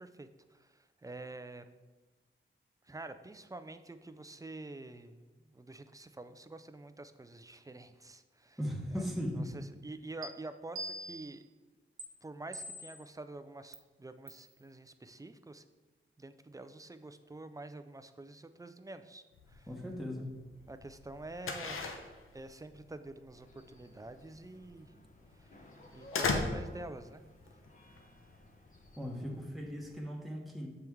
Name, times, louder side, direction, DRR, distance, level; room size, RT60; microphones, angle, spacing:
voice 1, 0.0-1.7 2.8-8.6 8.9-9.1 9.4-11.4 12.2-15.6 16.2-19.7 20.7-21.9 22.3-24.9 25.3-25.6 25.9-27.2, right 2 dB, 15° right, 10 dB, 0.3 m, -47 dB
voice 2, 8.6-9.5 19.7-20.3 29.0-30.7, equal, ahead, -2 dB, 1.0 m, -38 dB
sound 1, 10.2-10.3 10.8-11.4 12.0-12.1 12.5-13.1 13.7-13.8 14.3-14.5, right 1 dB, 90° right, 0.7 m, -43 dB
sound 2, 19.3-30.0, left 3 dB, 80° left, 0.7 m, -40 dB
sound 3, 23.3-29.4, left 1 dB, 40° left, 0.9 m, -56 dB
6.7 x 4.5 x 3.5 m, 1.2 s
wide cardioid pair, 85°, 21 cm